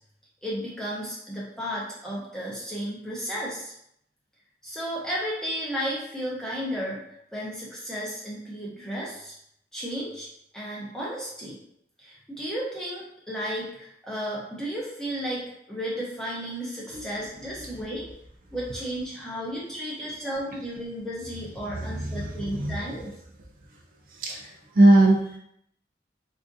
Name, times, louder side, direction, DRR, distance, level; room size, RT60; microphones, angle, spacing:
voice 1, 0.4-3.7 4.6-7.0 7.3-9.3 9.7-10.3 10.5-11.6 12.0-18.1 18.5-23.1, equal, 5° left, -6 dB, 0.7 m, -33 dB
voice 2, 19.8-20.2 21.7-23.1 24.1-25.4, right 1 dB, 50° right, -1 dB, 0.4 m, -22 dB
3.5 x 2.5 x 2.5 m, 0.73 s
head